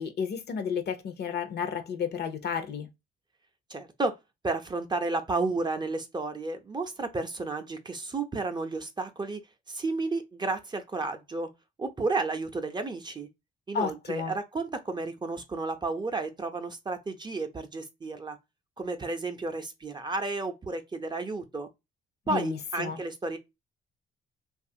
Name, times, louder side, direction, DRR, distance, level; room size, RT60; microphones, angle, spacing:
voice 1, 0.0-2.9 13.7-14.3 22.3-23.0, left 7 dB, 55° left, 0.7 m, -32 dB
voice 2, 3.7-4.2 4.4-9.4 9.7-11.5 11.8-13.3 13.7-18.4 18.8-21.7 22.3-23.4, right 3 dB, 20° right, 0.5 m, -32 dB
2.8 x 2.4 x 2.7 m
cardioid pair, 90°, 20 cm